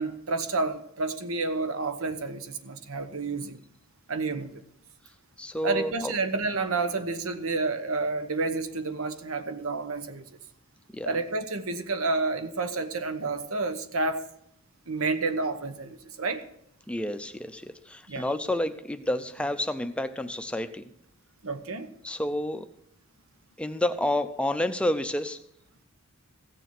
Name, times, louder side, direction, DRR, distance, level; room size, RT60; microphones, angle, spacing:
voice 1, 0.0-3.6 4.1-4.6 5.6-10.3 11.0-14.3 14.9-16.4 18.1-18.3 21.4-21.9, right 3 dB, 70° right, 1.0 m, -30 dB
voice 2, 5.4-6.1 10.9-11.2 16.9-20.8 22.0-22.7 23.6-25.4, left 1 dB, 5° left, 0.5 m, -29 dB
16.0 x 6.8 x 5.9 m
head